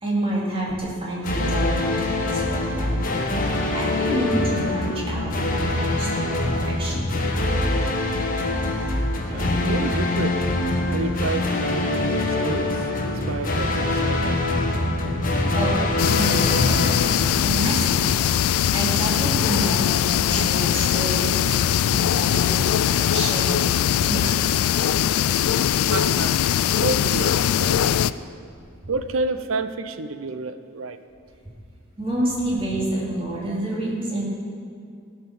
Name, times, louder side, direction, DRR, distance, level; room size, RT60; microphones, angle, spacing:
voice 1, 0.0-3.0 3.7-7.0 15.5-16.8 17.2-24.6 32.0-34.2, right 1 dB, 25° right, 2.6 m, -29 dB
sound 1, 1.2-18.3, left 2 dB, 40° left, 1.1 m, -24 dB
voice 2, 9.0-15.6 25.9-26.4 26.8-28.1 28.9-31.0, right 3 dB, 70° right, 0.6 m, -31 dB
sound 2, 9.3-10.3, right 1 dB, 45° right, 3.0 m, -36 dB
sound 3, 16.0-28.1, left 10 dB, 85° left, 0.3 m, -21 dB
16.5 x 5.6 x 6.0 m
head